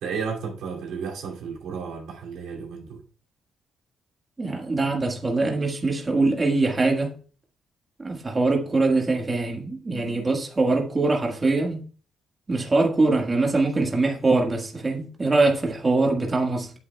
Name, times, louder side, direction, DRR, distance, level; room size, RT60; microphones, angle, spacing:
voice 1, 0.0-3.0, right 5 dB, 80° right, 2.4 m, -33 dB
voice 2, 4.4-7.1 8.0-11.8 12.5-16.7, right 3 dB, 25° right, 1.5 m, -23 dB
8.5 x 8.4 x 2.2 m
cardioid pair, 90°, 0 cm